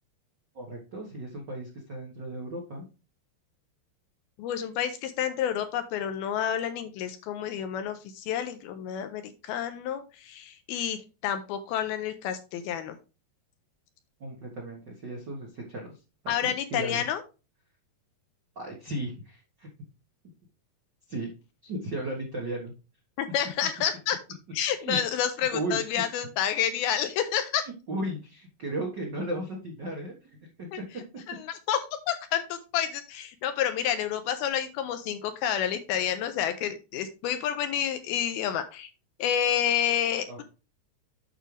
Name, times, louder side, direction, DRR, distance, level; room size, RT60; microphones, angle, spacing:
voice 1, 0.5-2.8 14.2-16.0 16.2-17.0 18.5-19.7 21.1-21.3 21.6-22.7 24.8-25.0 25.4-26.0 27.6-31.0 40.3-40.4, right 1 dB, 75° right, -1 dB, 1.0 m, -35 dB
voice 2, 4.4-13.0 16.3-17.2 23.2-24.2 24.5-27.6 30.7-30.8 31.3-31.8 32.1-38.9 39.2-40.4, left 9 dB, 80° left, 9 dB, 2.4 m, -29 dB
9.0 x 6.1 x 3.3 m, 0.31 s
omnidirectional pair, 4.8 m